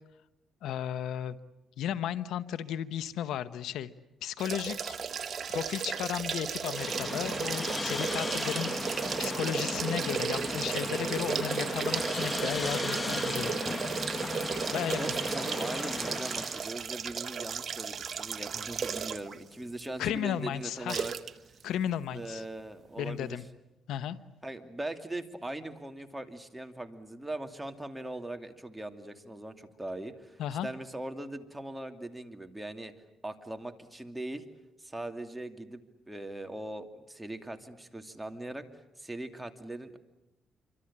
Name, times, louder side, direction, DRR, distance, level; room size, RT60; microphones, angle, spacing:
voice 1, 0.6-1.4 1.8-3.9 4.2-5.0 5.5-13.6 14.7-15.0 20.0-21.1 21.6-22.4 23.0-23.4 23.9-24.2 30.4-30.7, left 10 dB, 80° left, 14 dB, 1.0 m, -34 dB
sound 1, 4.4-19.4 19.8-19.9 20.9-21.3 21.6-21.7, right 6 dB, 50° right, 1.4 m, -34 dB
sound 2, 6.6-16.7, left 3 dB, 25° left, 1.1 m, -36 dB
voice 2, 14.5-21.1 22.1-23.4 24.4-32.9 33.2-34.4 34.8-35.8 36.1-38.6 39.0-40.0, right 1 dB, 10° right, 6 dB, 2.7 m, -40 dB
27.0 x 25.0 x 8.8 m, 0.90 s
cardioid pair, 90°, 0 cm